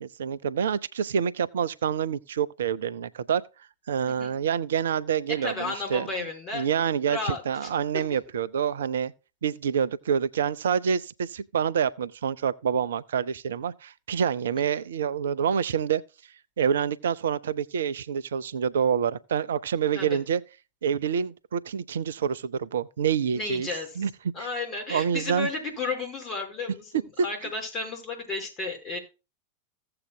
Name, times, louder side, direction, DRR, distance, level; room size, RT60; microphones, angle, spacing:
voice 1, 0.0-3.4 3.9-6.1 6.5-9.1 9.4-16.0 16.6-20.4 20.8-23.7 24.0-24.1 24.4-24.5 24.9-25.5, right 8 dB, 65° right, 0.5 m, -27 dB
voice 2, 4.0-4.4 5.4-6.7 7.1-8.0 19.9-20.2 23.3-24.1 24.3-29.0, left 3 dB, 30° left, 4.9 m, -33 dB
16.0 x 7.7 x 2.2 m
figure-of-eight pair, 90°, 0 cm